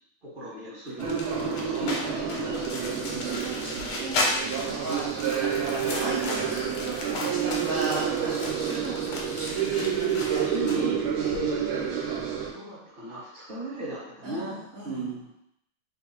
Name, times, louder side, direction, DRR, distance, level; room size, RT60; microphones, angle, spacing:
voice 1, 0.2-3.5 10.4-11.0 11.3-12.1 12.5-14.6 14.8-15.3, right 2 dB, 25° right, -8 dB, 1.6 m, -36 dB
sound 1, 1.0-10.8, left 2 dB, 80° left, 1.7 m, -35 dB
sound 2, 1.0-12.5, right 7 dB, 80° right, 1.4 m, -29 dB
voice 2, 3.2-10.5 11.2-11.3 14.2-15.1, right 2 dB, 65° right, -7 dB, 0.9 m, -37 dB
3.8 x 3.4 x 3.0 m, 0.76 s
omnidirectional pair, 2.3 m